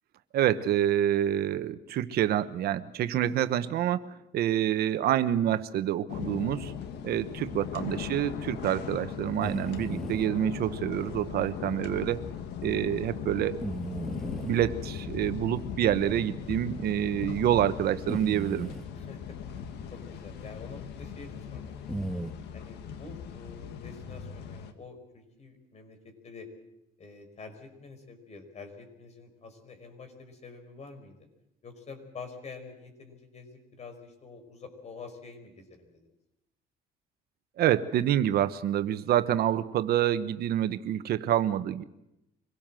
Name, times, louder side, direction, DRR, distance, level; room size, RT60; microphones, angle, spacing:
voice 1, 0.3-4.1 4.3-6.7 7.0-12.2 12.6-13.6 14.4-18.7 37.6-41.8, right 11 dB, 65° right, 11 dB, 1.1 m, -27 dB
sound 1, 6.1-24.7, left 8 dB, 80° left, 1.8 m, -39 dB
voice 2, 7.7-8.2 19.0-19.4 19.9-21.8 22.5-26.5 27.0-31.3 31.6-36.1, left 4 dB, 40° left, 6 dB, 5.2 m, -47 dB
sound 2, 9.4-10.3 11.4-11.5 12.1-12.2 13.6-14.6 15.5-15.6 16.7-16.8 18.1-18.9 21.9-22.3, right 1 dB, ahead, 2.2 m, -36 dB
25.0 x 17.5 x 7.6 m, 0.88 s
cardioid pair, 110°, 17 cm